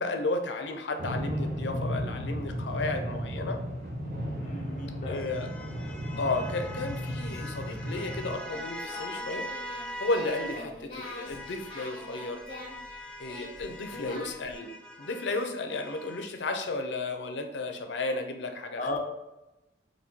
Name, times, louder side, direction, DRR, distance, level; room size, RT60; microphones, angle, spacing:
voice 1, 0.0-3.6 5.1-5.5 6.2-9.5 10.0-12.4 13.2-14.7 15.0-18.8, left 2 dB, 80° left, 5 dB, 0.6 m, -33 dB
sound 1, 1.0-8.3, equal, 55° right, 1.0 m, -34 dB
sound 2, 4.0-10.7 11.0-16.4, equal, 5° left, 0.4 m, -43 dB
voice 2, 4.4-5.2 10.5-10.7 13.9-14.2 18.7-19.0, left 2 dB, 45° left, 0 dB, 0.7 m, -36 dB
Singing, 8.3-14.6, left 2 dB, 25° left, 1.3 m, -45 dB
4.2 x 2.7 x 4.4 m, 0.98 s
head